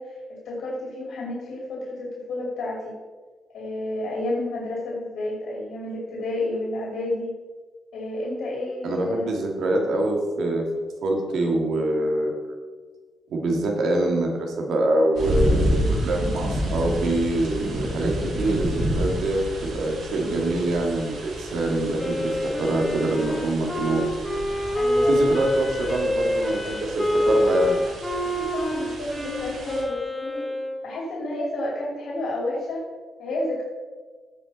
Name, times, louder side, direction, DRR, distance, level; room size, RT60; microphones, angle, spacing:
voice 1, 0.0-2.9 3.5-7.3 7.9-9.4 24.7-25.2 28.2-30.4 30.8-32.8 33.2-33.6, left 1 dB, 75° left, -4 dB, 2.7 m, -30 dB
voice 2, 8.8-10.7 11.0-12.6 13.3-24.0 25.1-27.8, right 1 dB, 70° right, 1 dB, 2.0 m, -25 dB
sound 1, 15.2-29.8, equal, 85° right, 2.7 m, -30 dB
Wind instrument woodwind instrument, 22.0-30.8, equal, 5° left, 1.4 m, -26 dB
15.5 x 5.5 x 4.2 m, 1.4 s
wide cardioid pair, 170°, 0 cm